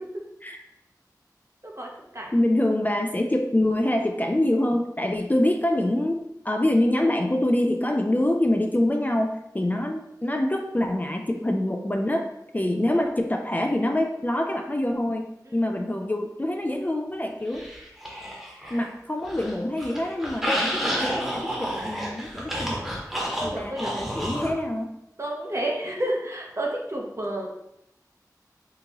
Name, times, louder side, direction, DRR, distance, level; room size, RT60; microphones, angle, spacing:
voice 1, 1.6-2.3 9.7-9.8 15.5-15.6 20.4-20.9 23.4-24.0 25.2-27.5, right 1 dB, 45° right, -1 dB, 0.7 m, -31 dB
voice 2, 2.3-12.3 12.5-17.7 18.7-23.0 23.4-24.9, left 1 dB, 25° left, 3 dB, 0.3 m, -25 dB
sound 1, 17.5-18.9 19.2-24.5, equal, 5° right, 1.0 m, -30 dB
3.6 x 2.8 x 2.9 m, 0.81 s
wide cardioid pair, 50°, 7 cm